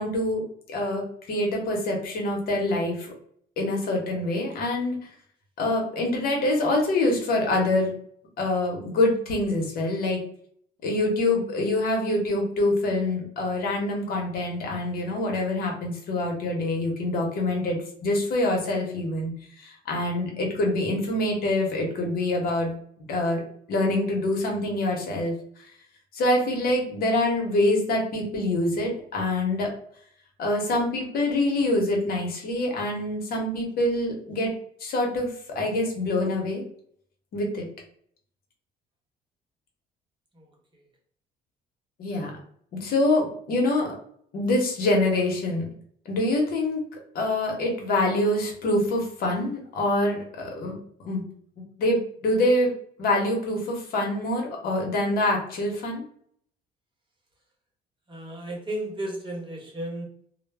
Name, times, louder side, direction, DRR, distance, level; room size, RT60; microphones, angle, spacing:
voice 1, 0.0-3.1 3.6-5.1 5.6-7.9 8.4-10.2 10.8-17.8 18.0-22.7 23.1-23.4 23.7-25.3 25.6-25.7 26.1-29.7 30.4-34.5 34.8-36.6 37.3-37.7 42.0-42.3 42.8-43.9 44.3-45.6 46.1-46.8 47.1-50.8 51.0-51.2 51.8-52.7 53.0-56.0, left 1 dB, 65° left, 1 dB, 0.9 m, -25 dB
voice 2, 58.1-60.0, right 1 dB, 30° right, 0 dB, 0.9 m, -33 dB
2.1 x 2.0 x 3.3 m, 0.62 s
cardioid pair, 110°, 17 cm